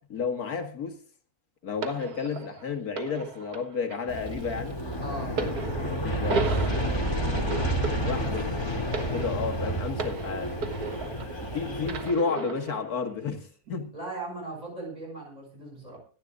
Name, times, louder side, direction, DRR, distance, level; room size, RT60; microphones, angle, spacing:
voice 1, 0.1-1.0 1.6-4.8 5.4-5.5 5.8-6.5 8.0-8.4 8.8-10.5 11.4-13.9, left 5 dB, 75° left, 2.2 m, -31 dB
sound 1, 1.8-11.5 11.8-12.9 13.7-13.8, right 4 dB, 80° right, 2.0 m, -36 dB
Aircraft, 4.1-12.1, right 1 dB, 15° left, 3.0 m, -30 dB
voice 2, 5.0-5.4 7.9-8.3 13.9-16.0, right 2 dB, 25° right, 6.7 m, -38 dB
25.0 x 11.0 x 2.5 m
omnidirectional pair, 1.6 m